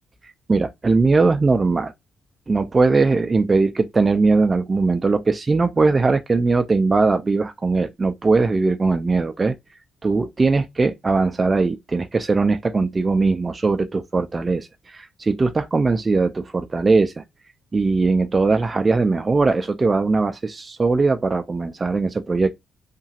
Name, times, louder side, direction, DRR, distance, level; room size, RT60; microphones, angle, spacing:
voice 1, 0.5-1.9 2.5-9.5 10.0-17.2 17.7-22.5, right 3 dB, 25° right, 0.3 m, -20 dB
2.9 x 2.7 x 2.3 m
cardioid pair, 90°, 0 cm